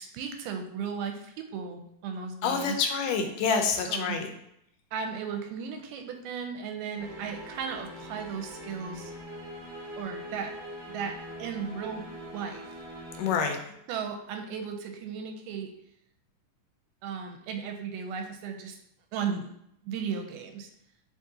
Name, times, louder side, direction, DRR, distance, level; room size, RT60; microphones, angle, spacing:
voice 1, 0.0-2.8 3.9-4.2 4.9-9.1 10.0-10.5 10.9-12.1 12.3-12.7 13.9-15.7 17.0-18.8 19.1-19.5 19.8-20.7, right 6 dB, 85° right, 4 dB, 2.1 m, -35 dB
voice 2, 2.4-4.3 13.2-13.6, left 5 dB, 85° left, 4 dB, 2.2 m, -27 dB
sound 1, 7.0-13.4, equal, 65° right, 1.7 m, -43 dB
4.9 x 2.7 x 3.7 m, 0.75 s
omnidirectional pair, 3.7 m